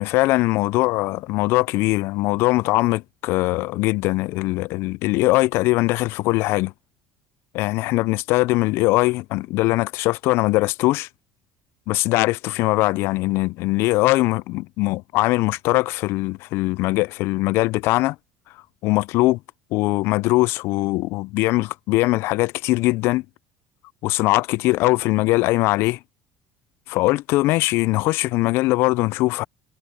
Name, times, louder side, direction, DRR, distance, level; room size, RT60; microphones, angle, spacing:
voice 1, 0.0-6.7 7.5-11.1 11.9-18.2 18.8-19.4 19.7-23.2 24.0-26.0 26.9-29.4, left 20 dB, 70° left, 0.3 m, -21 dB
supercardioid pair, 105°, 4 cm